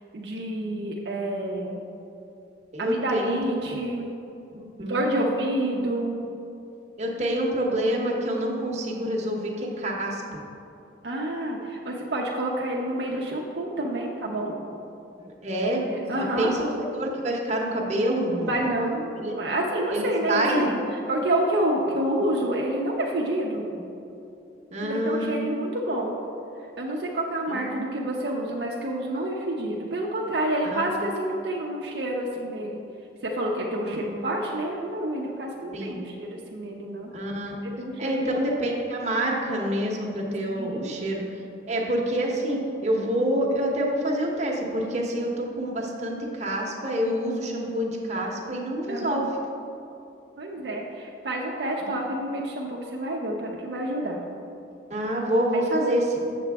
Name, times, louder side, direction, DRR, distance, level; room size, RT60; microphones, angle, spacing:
voice 1, 0.1-1.8 2.8-4.1 4.8-6.3 11.0-14.5 15.9-16.5 18.5-23.7 24.8-26.1 26.6-32.8 33.2-37.1 37.6-38.3 40.5-40.9 48.9-49.3 50.4-54.2 55.5-55.9, right 1 dB, 65° right, -2 dB, 0.6 m, -28 dB
voice 2, 2.7-3.4 4.5-5.0 7.0-10.2 15.2-15.8 16.1-16.7 17.0-18.6 19.2-19.3 19.9-20.7 23.7-23.8 24.7-25.4 27.5-27.8 30.6-30.9 33.8-34.1 35.7-36.0 37.1-37.5 38.0-41.2 41.7-49.3 54.9-56.0, right 1 dB, 40° right, -1 dB, 0.9 m, -27 dB
7.5 x 6.9 x 3.5 m, 2.8 s
head